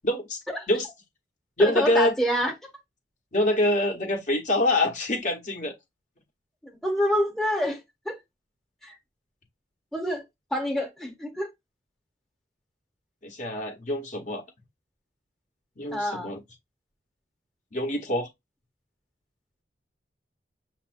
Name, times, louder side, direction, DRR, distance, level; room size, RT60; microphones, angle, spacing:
voice 1, 0.0-0.4 0.7-0.9 1.6-2.1 3.3-5.7 13.2-14.4 15.8-16.4 17.7-18.3, left 1 dB, 45° left, 1.3 m, -25 dB
voice 2, 1.6-2.5 6.8-7.8 8.0-8.2 8.8-8.9 9.9-10.2 10.5-11.5 15.9-16.4, equal, ahead, 1.0 m, -27 dB
6.7 x 2.8 x 2.6 m
head